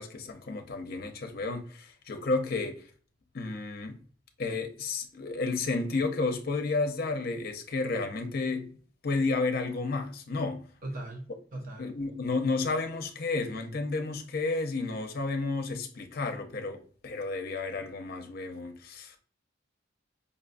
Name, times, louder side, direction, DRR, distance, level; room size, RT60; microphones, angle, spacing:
voice 1, 0.0-2.9 3.3-4.0 4.4-8.7 9.0-10.6 11.8-19.2, left 3 dB, 55° left, 0.6 m, -32 dB
voice 2, 10.8-11.9, right 1 dB, 45° right, 0.7 m, -39 dB
5.3 x 2.2 x 2.5 m
head